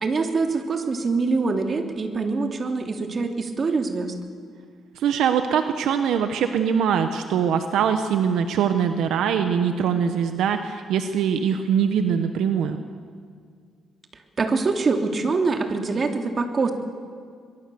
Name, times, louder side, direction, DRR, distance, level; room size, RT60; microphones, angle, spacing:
voice 1, 0.0-4.1 14.4-16.7, right 4 dB, 40° right, 4 dB, 2.7 m, -24 dB
voice 2, 5.0-12.8, right 7 dB, 80° right, 8 dB, 1.1 m, -22 dB
24.0 x 22.0 x 7.0 m, 2.1 s
cardioid pair, 90°, 0 cm